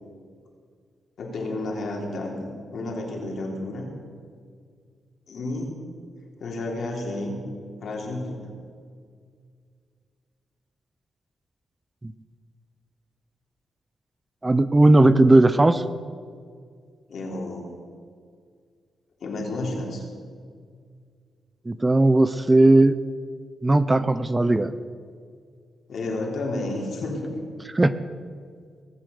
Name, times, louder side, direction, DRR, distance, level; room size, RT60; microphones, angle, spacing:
voice 1, 1.2-3.9 5.3-5.7 6.4-7.4 7.8-8.5 17.1-17.7 19.2-20.0 25.9-27.3, left 2 dB, 70° left, 0 dB, 3.2 m, -31 dB
voice 2, 14.4-15.8 21.7-23.0 23.6-24.7 27.7-27.9, right 2 dB, 20° right, 14 dB, 0.6 m, -17 dB
19.0 x 7.5 x 6.8 m, 2.1 s
cardioid pair, 85°, 0 cm